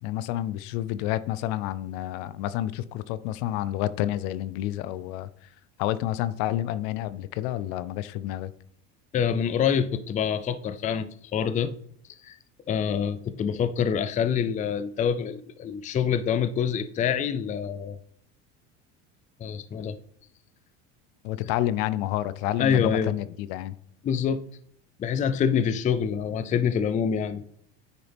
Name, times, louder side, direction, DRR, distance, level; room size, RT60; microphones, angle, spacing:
voice 1, 0.0-5.5 5.8-8.5 21.2-23.8, left 13 dB, 70° left, 0.5 m, -29 dB
voice 2, 9.1-11.7 12.2-12.4 12.7-18.0 19.4-20.0 22.6-23.1 24.0-24.4 25.0-27.4, left 7 dB, 25° left, 0.4 m, -26 dB
9.8 x 4.0 x 3.4 m
supercardioid pair, 105°, 35 cm